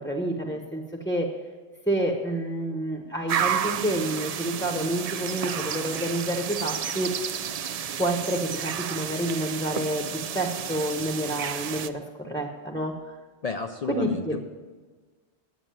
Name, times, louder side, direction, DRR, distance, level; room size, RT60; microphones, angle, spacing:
voice 1, 0.0-1.3 1.9-7.1 8.0-13.0 13.9-14.4, right 1 dB, 5° left, 2 dB, 0.9 m, -29 dB
sound 1, 3.3-11.9, right 8 dB, 60° right, 0.4 m, -31 dB
voice 2, 13.4-14.4, left 4 dB, 45° left, 6 dB, 0.5 m, -31 dB
8.9 x 8.1 x 9.0 m, 1.4 s
omnidirectional pair, 1.1 m